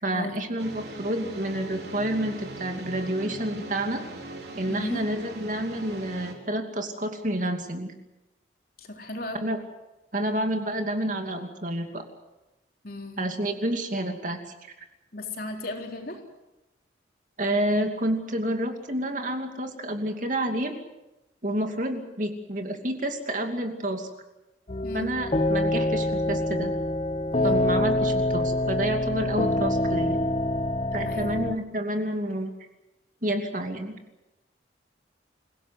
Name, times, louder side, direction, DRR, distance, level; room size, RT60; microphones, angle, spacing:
voice 1, 0.0-4.0 4.6-7.9 9.4-9.6 10.1-12.0 13.2-14.4 17.4-20.7 21.4-24.1 24.9-26.7 27.4-30.2 30.9-32.5 33.2-33.9, right 1 dB, 45° right, 5 dB, 2.7 m, -29 dB
sound 1, 0.6-6.3, right 2 dB, 60° right, 3.9 m, -40 dB
voice 2, 4.7-5.1 8.8-9.5 12.8-13.2 15.1-16.2 24.8-25.1 27.3-27.6 31.1-31.5, left 1 dB, 50° left, 2 dB, 3.9 m, -36 dB
sound 2, 24.7-31.5, left 1 dB, 30° left, 0.9 m, -26 dB
28.0 x 17.5 x 8.0 m, 0.99 s
head